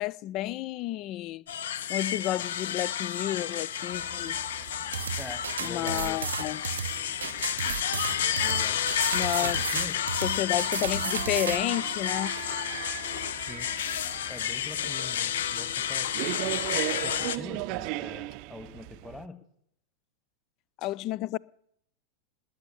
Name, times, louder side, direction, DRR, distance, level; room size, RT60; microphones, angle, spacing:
voice 1, 0.0-1.4 1.9-4.4 5.6-6.6 9.1-9.6 10.2-12.4 20.8-21.4, left 14 dB, 40° left, 0.5 m, -31 dB
sound 1, 1.5-17.4, left 9 dB, 65° left, 0.9 m, -31 dB
sound 2, 3.9-19.3, right 19 dB, 50° right, 0.6 m, -40 dB
sound 3, 4.9-11.6, right 8 dB, 75° right, 0.8 m, -33 dB
voice 2, 5.2-6.2 8.4-8.8 9.4-10.0 13.5-13.7 14.3-16.3 16.9-19.4, left 2 dB, 5° left, 1.8 m, -44 dB
20.0 x 8.0 x 8.5 m
figure-of-eight pair, 90°, 0 cm